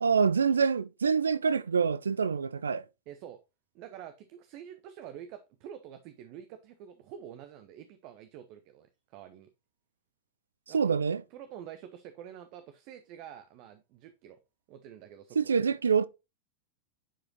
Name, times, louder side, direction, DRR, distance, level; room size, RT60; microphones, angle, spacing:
voice 1, 0.0-2.8 10.7-11.2 15.4-16.1, right 6 dB, 70° right, 0.4 m, -26 dB
voice 2, 3.1-3.4 3.7-9.5 10.7-11.0 11.3-14.4 14.7-15.5, right 9 dB, 45° right, 0.7 m, -47 dB
10.0 x 5.0 x 2.8 m
figure-of-eight pair, 90°, 0 cm